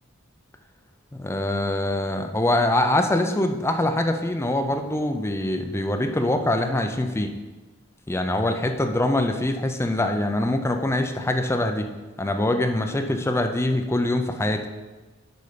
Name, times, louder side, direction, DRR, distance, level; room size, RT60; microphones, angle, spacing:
voice 1, 1.1-7.3 8.1-11.9 12.2-14.6, left 1 dB, 10° left, 6 dB, 0.4 m, -24 dB
6.7 x 5.4 x 5.0 m, 1.2 s
head